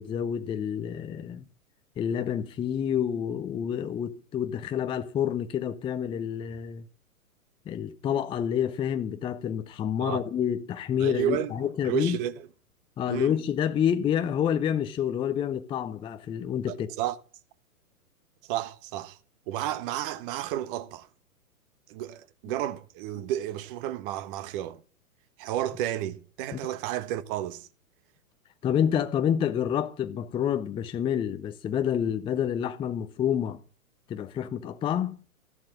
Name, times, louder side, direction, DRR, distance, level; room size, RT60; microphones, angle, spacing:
voice 1, 0.0-1.4 2.0-6.8 7.7-12.2 13.0-16.9 26.5-26.6 28.6-33.6 34.1-35.2, left 9 dB, 10° left, 0.6 m, -28 dB
voice 2, 11.0-12.5 13.1-13.3 16.7-17.2 18.5-19.2 19.5-21.1 21.9-24.8 25.4-27.7, right 12 dB, 35° right, 1.4 m, -32 dB
14.0 x 11.5 x 7.4 m
hypercardioid pair, 120°, 44 cm